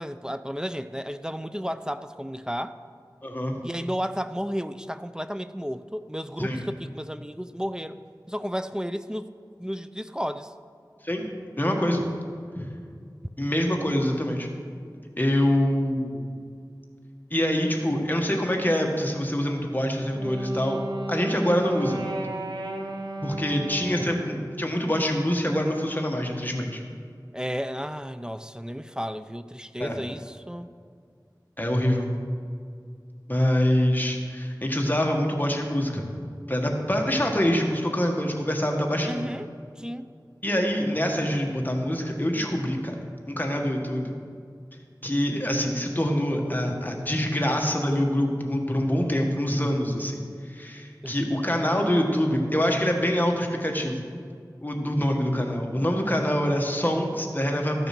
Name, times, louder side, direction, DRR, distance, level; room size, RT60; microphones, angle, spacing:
voice 1, 0.0-2.8 3.6-8.0 8.3-9.3 9.6-10.5 23.8-24.1 27.3-30.7 39.1-39.5 39.8-40.1 51.0-51.2, equal, 10° right, 11 dB, 0.4 m, -33 dB
voice 2, 3.2-3.5 6.4-6.6 11.0-11.3 11.6-12.0 12.5-12.7 13.4-14.5 15.1-16.3 17.3-20.8 21.1-22.0 23.2-26.8 29.8-30.0 31.6-32.1 33.3-36.0 36.5-39.3 40.4-43.0 43.3-44.1 45.0-54.0 54.6-57.9, equal, 25° left, 1 dB, 1.5 m, -25 dB
Wind instrument woodwind instrument, 19.9-24.5, right 1 dB, 80° right, 1.0 m, -33 dB
14.0 x 6.7 x 6.0 m, 2.2 s
wide cardioid pair, 40°, 7 cm